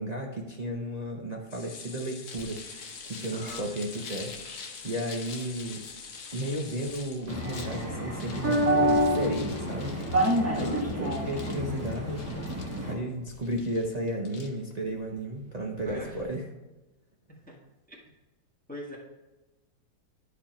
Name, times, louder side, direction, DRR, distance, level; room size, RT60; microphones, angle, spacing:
voice 1, 0.0-5.8 6.3-10.0 10.5-12.4 12.8-16.4, right 1 dB, 45° right, -1 dB, 0.5 m, -34 dB
sound 1, 1.5-7.8 8.2-8.3 8.6-8.7, left 6 dB, 80° left, 1.8 m, -46 dB
sound 2, 2.3-16.2, left 4 dB, 50° left, 1.2 m, -47 dB
voice 2, 3.3-3.7 10.4-10.8 15.8-16.3 17.5-17.6 17.9-18.0 18.7-19.0, equal, 5° left, -3 dB, 1.4 m, -42 dB
sound 3, 7.3-12.9, equal, 10° right, 0.9 m, -28 dB
11.0 x 5.1 x 4.3 m, 1.1 s
omnidirectional pair, 2.0 m